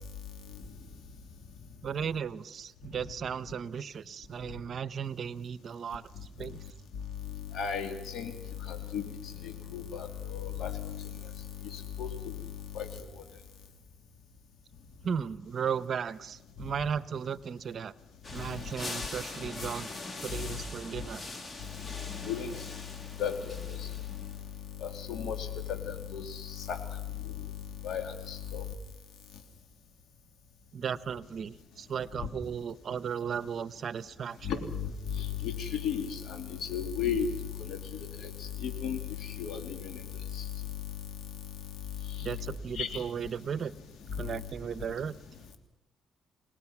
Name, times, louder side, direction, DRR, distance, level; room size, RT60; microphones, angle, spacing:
voice 1, 1.8-6.1 6.4-6.6 15.0-17.9 18.3-19.9 20.2-21.2 30.7-34.5 42.2-43.7 44.2-45.1, right 7 dB, 55° right, 16 dB, 0.8 m, -35 dB
voice 2, 7.5-8.3 8.7-9.0 9.4-11.1 11.7-12.3 12.7-12.9 22.2-22.5 23.2-23.8 24.8-26.8 27.8-28.6 34.4-37.3 37.7-37.8 38.2-38.3 38.6-40.0 40.3-40.4 42.8-42.9, left 7 dB, 75° left, 6 dB, 3.1 m, -34 dB
sound 1, 18.2-24.5, left 3 dB, 35° left, 2.5 m, -42 dB
30.0 x 19.0 x 6.0 m, 0.91 s
cardioid pair, 90°, 0 cm